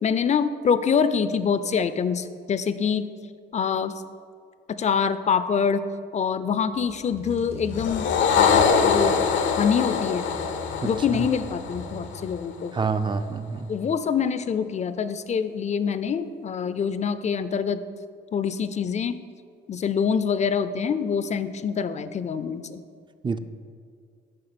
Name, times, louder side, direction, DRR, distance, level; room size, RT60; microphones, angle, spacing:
voice 1, 0.0-3.1 3.5-4.0 4.8-10.2 10.8-12.7 13.7-17.8 18.3-19.2 19.7-22.8, left 6 dB, 35° left, 12 dB, 0.5 m, -25 dB
sound 1, 6.7-12.7, equal, 85° right, 2.0 m, -41 dB
sound 2, 7.7-12.3, left 6 dB, 75° left, 0.7 m, -23 dB
voice 2, 10.8-11.3 12.7-13.7 23.2-23.4, right 4 dB, 25° right, 10 dB, 0.4 m, -27 dB
10.0 x 3.5 x 6.9 m, 2.2 s
cardioid pair, 90°, 20 cm